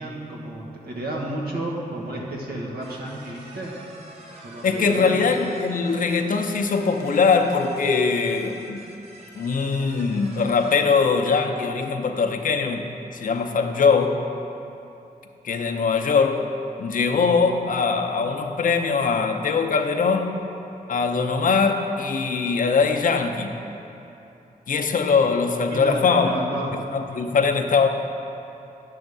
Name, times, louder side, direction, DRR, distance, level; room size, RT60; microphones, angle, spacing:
voice 1, 0.0-3.8 4.4-5.1 25.7-26.8, right 1 dB, 90° right, -2 dB, 1.3 m, -31 dB
sound 1, 2.8-10.8, right 1 dB, 45° right, 1.0 m, -46 dB
voice 2, 4.6-8.8 9.4-14.2 15.4-16.4 16.8-20.4 20.9-23.6 24.7-26.3 26.9-27.9, left 5 dB, 60° left, 4 dB, 0.6 m, -21 dB
10.5 x 3.6 x 6.6 m, 2.8 s
wide cardioid pair, 135°, 15 cm